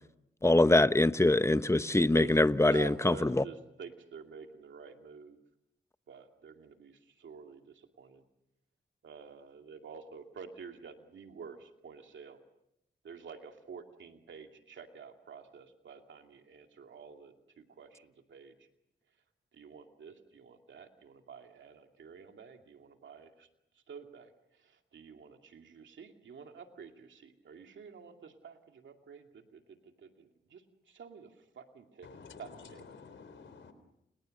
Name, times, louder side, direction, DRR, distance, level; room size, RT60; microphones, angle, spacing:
voice 1, 0.4-3.4, left 2 dB, 15° left, 13 dB, 1.1 m, -24 dB
voice 2, 2.7-5.4 6.1-8.2 9.0-12.4 13.0-18.5 19.5-23.5 23.9-24.3 24.6-32.9, right 6 dB, 85° right, 5 dB, 2.5 m, -49 dB
voice 3, 32.0-33.7, left 5 dB, 85° left, 11 dB, 3.8 m, -51 dB
30.0 x 29.5 x 6.6 m, 0.82 s
cardioid pair, 45°, 19 cm